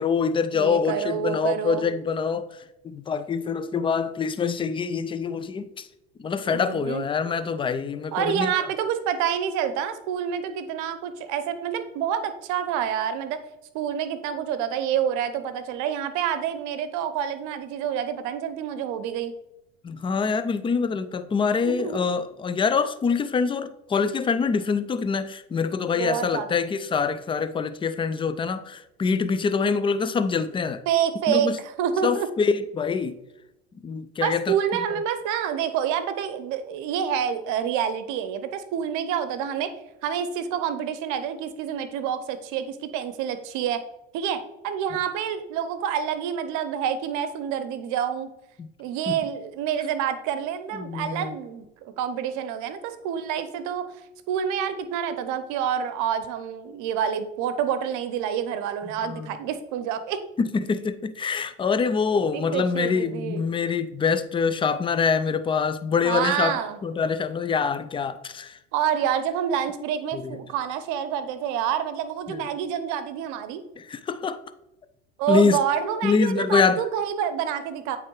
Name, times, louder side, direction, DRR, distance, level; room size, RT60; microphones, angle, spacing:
voice 1, 0.0-2.5 2.8-5.9 6.2-8.5 19.8-30.8 31.3-31.6 32.0-33.2 33.8-34.4 34.9-35.0 48.6-48.7 49.1-49.2 50.7-51.3 59.0-59.4 60.4-68.6 70.1-70.4 72.3-72.4 73.8-74.4 75.3-75.6 76.0-76.8, left 5 dB, 15° left, 12 dB, 0.4 m, -25 dB
voice 2, 0.5-1.8 6.5-7.0 8.1-13.4 13.7-19.3 21.6-22.0 25.9-26.5 30.9-32.3 34.2-39.7 40.0-43.8 44.1-48.3 48.8-53.9 54.3-60.2 62.3-63.4 66.0-66.8 68.7-73.6 75.2-78.0, right 8 dB, 60° right, 11 dB, 0.9 m, -27 dB
8.3 x 3.3 x 4.7 m, 0.91 s
hypercardioid pair, 95°, 34 cm